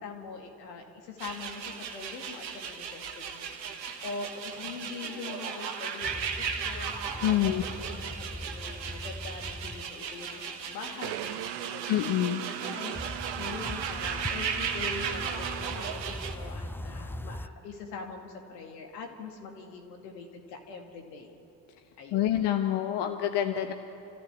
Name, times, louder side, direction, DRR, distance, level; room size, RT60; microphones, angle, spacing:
voice 1, 0.0-7.5 8.0-11.9 12.5-21.3 22.0-22.3, left 4 dB, 75° left, 3 dB, 2.4 m, -43 dB
sound 1, 1.2-16.3, right 6 dB, 85° right, 1.4 m, -36 dB
sound 2, 6.0-9.8 12.9-17.5, left 1 dB, 5° left, 0.6 m, -40 dB
voice 2, 7.2-7.6 11.9-12.4 22.1-23.7, left 12 dB, 55° left, 6 dB, 1.2 m, -26 dB
Mini blender, 11.0-16.6, right 16 dB, 55° right, 0.7 m, -39 dB
27.5 x 15.0 x 8.4 m, 3.0 s
hypercardioid pair, 55°, 49 cm